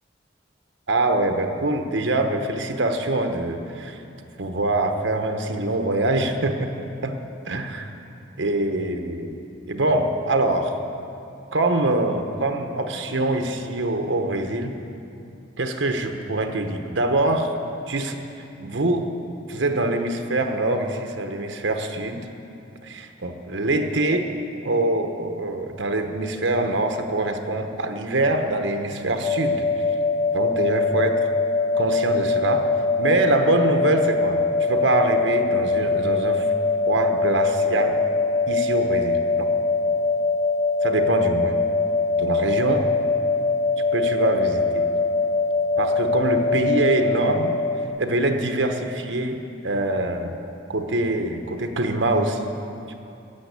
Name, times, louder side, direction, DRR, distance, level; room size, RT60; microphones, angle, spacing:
voice 1, 0.9-4.0 4.4-6.7 7.0-7.2 7.5-7.9 8.4-9.4 9.7-10.7 11.5-14.7 15.6-17.5 17.9-18.2 18.6-19.1 19.5-22.3 23.2-24.3 24.6-29.7 30.3-31.3 31.7-32.7 33.0-36.5 36.9-38.0 38.5-39.5 40.8-41.6 42.2-42.9 43.9-44.9 45.8-47.6 48.0-50.4 50.7-52.5 52.9-53.0, right 2 dB, 80° right, 5 dB, 1.0 m, -24 dB
sound 1, 29.2-47.9, left 3 dB, 25° left, 0.7 m, -22 dB
14.5 x 7.6 x 9.7 m, 2.6 s
head